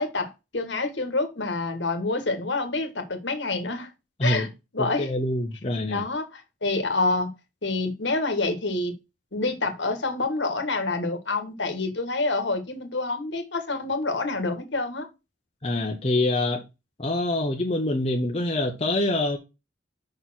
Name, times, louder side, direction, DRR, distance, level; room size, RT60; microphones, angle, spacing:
voice 1, 0.0-3.9 4.2-4.5 4.7-5.1 5.9-7.3 7.6-8.9 9.3-15.1, left 3 dB, 65° left, 1.5 m, -27 dB
voice 2, 4.8-6.0 15.6-16.6 17.0-19.4, left 1 dB, 30° left, 0.9 m, -25 dB
5.4 x 4.3 x 6.1 m
head